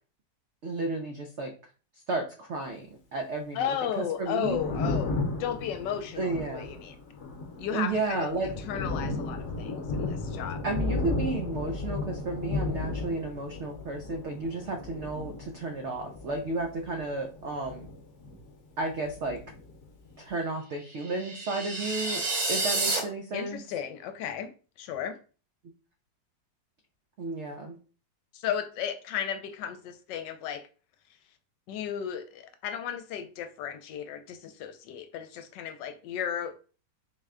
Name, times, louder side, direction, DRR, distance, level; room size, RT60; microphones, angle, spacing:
voice 1, 0.6-1.5 2.1-4.6 6.2-6.7 7.7-8.5 10.6-17.9 18.8-19.4 20.2-22.2 22.5-23.6 27.2-27.8, right 3 dB, 85° right, 3 dB, 0.6 m, -33 dB
voice 2, 3.5-6.9 7.6-10.6 23.3-24.5 24.8-25.2 28.3-30.6 31.7-36.6, left 9 dB, 85° left, 9 dB, 1.2 m, -34 dB
Thunder, 4.2-18.6 18.9-20.2, left 3 dB, 50° left, 1.0 m, -35 dB
sound 1, 21.0-23.0, right 2 dB, 70° right, 2.2 m, -29 dB
4.0 x 2.1 x 3.5 m, 0.37 s
omnidirectional pair, 1.9 m